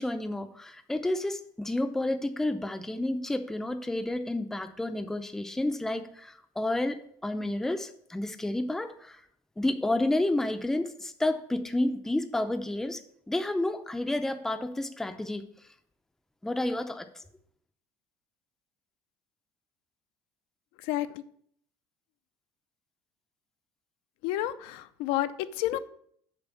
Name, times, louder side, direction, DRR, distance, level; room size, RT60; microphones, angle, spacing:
voice 1, 0.0-9.2 9.6-13.0 13.3-15.4 16.4-17.2, left 1 dB, 5° left, 8 dB, 0.5 m, -30 dB
voice 2, 20.8-21.2 24.2-25.8, left 14 dB, 70° left, 13 dB, 0.5 m, -30 dB
7.0 x 4.5 x 6.9 m, 0.65 s
cardioid pair, 150°, 10 cm